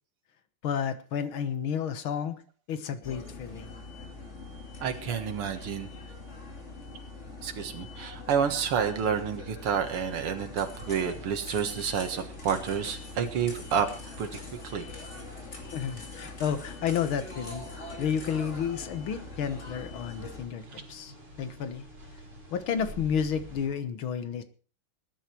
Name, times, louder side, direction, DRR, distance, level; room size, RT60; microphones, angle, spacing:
voice 1, 0.6-2.4 2.7-3.8 15.7-17.7 18.0-21.8 22.5-24.4, left 7 dB, 70° left, 12 dB, 2.0 m, -31 dB
sound 1, 3.0-20.4, left 2 dB, 30° left, 3.0 m, -43 dB
voice 2, 4.8-5.9 7.4-14.4 14.6-14.8, right 7 dB, 85° right, 6 dB, 2.5 m, -29 dB
sound 2, 10.8-23.7, equal, 25° right, 5.0 m, -50 dB
20.0 x 10.0 x 4.5 m, 0.39 s
omnidirectional pair, 2.4 m